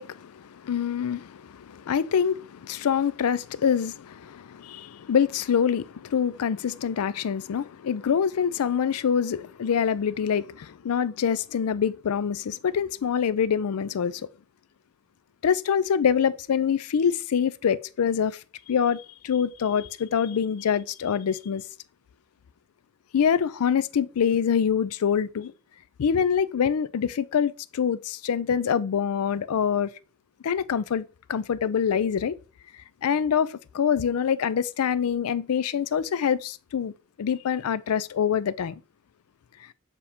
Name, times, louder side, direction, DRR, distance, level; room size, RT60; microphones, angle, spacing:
voice 1, 0.0-14.3 15.4-18.4 18.7-21.6 23.1-25.5 26.0-29.9 30.4-32.4 33.0-38.8, left 7 dB, 85° left, 0.4 m, -25 dB
7.1 x 2.9 x 5.0 m
head